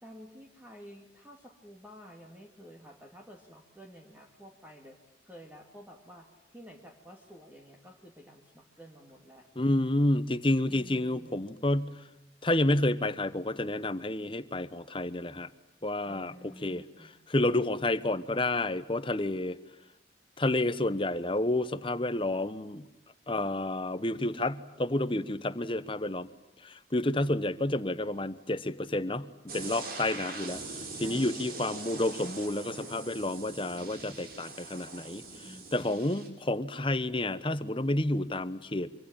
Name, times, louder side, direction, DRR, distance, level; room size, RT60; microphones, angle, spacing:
voice 1, 0.0-5.0 5.2-9.5 10.7-11.5 16.0-17.1 31.0-31.6 35.4-36.0, equal, 10° right, 2 dB, 2.3 m, -51 dB
voice 2, 9.6-11.9 12.4-15.5 15.8-16.3 16.6-16.8 17.3-19.6 20.4-22.8 23.3-26.3 26.6-30.6 31.0-35.2 35.7-38.9, left 1 dB, 30° left, 14 dB, 1.0 m, -30 dB
sound 1, 29.5-36.3, right 3 dB, 50° right, 4.5 m, -42 dB
25.5 x 25.0 x 8.8 m, 0.88 s
head